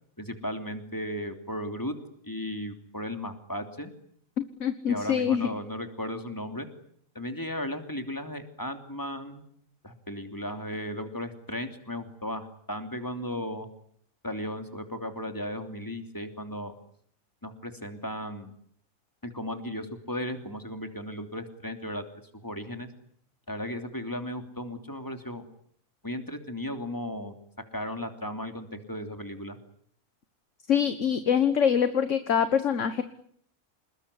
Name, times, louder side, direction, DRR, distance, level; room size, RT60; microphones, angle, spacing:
voice 1, 0.2-1.9 2.2-3.9 4.9-6.7 7.1-9.4 9.8-13.7 14.2-16.7 17.4-18.5 19.2-22.0 22.4-22.9 23.5-25.4 26.0-27.3 27.7-29.6, left 1 dB, 15° left, 7 dB, 3.1 m, -35 dB
voice 2, 4.4-5.5 30.7-33.0, left 8 dB, 60° left, 11 dB, 1.7 m, -24 dB
27.5 x 21.0 x 9.9 m, 0.65 s
omnidirectional pair, 1.4 m